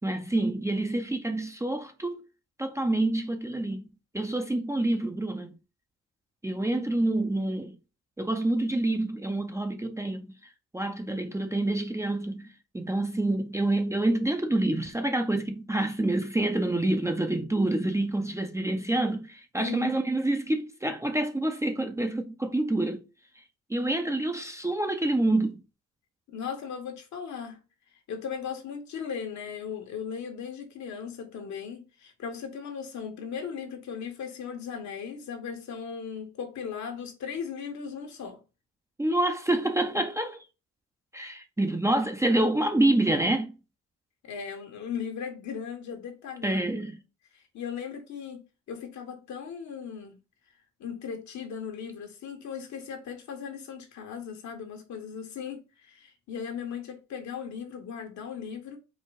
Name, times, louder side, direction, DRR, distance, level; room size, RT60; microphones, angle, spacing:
voice 1, 0.0-2.2 2.6-3.9 4.1-5.5 6.4-7.7 8.2-10.3 10.7-12.5 12.7-23.0 23.7-25.6 39.0-40.4 41.1-43.5 46.4-47.0, right 1 dB, 10° right, 0.6 m, -27 dB
voice 2, 19.6-20.0 26.3-27.6 28.1-38.4 44.2-46.9 47.3-50.2 50.8-58.8, left 7 dB, 65° left, 1.4 m, -37 dB
4.7 x 2.2 x 4.8 m
cardioid pair, 90°, 30 cm